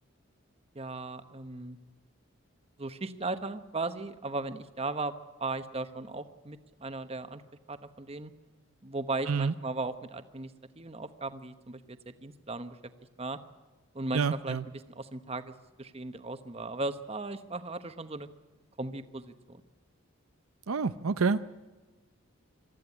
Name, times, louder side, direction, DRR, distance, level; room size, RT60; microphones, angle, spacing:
voice 1, 0.7-1.8 2.8-7.4 7.7-8.3 8.8-12.8 13.2-13.4 13.9-14.6 14.9-18.3 18.8-19.6, right 3 dB, 30° right, 9 dB, 1.0 m, -37 dB
voice 2, 14.1-14.6 20.7-21.4, right 5 dB, 90° right, 11 dB, 0.6 m, -28 dB
24.0 x 14.0 x 9.8 m, 1.3 s
head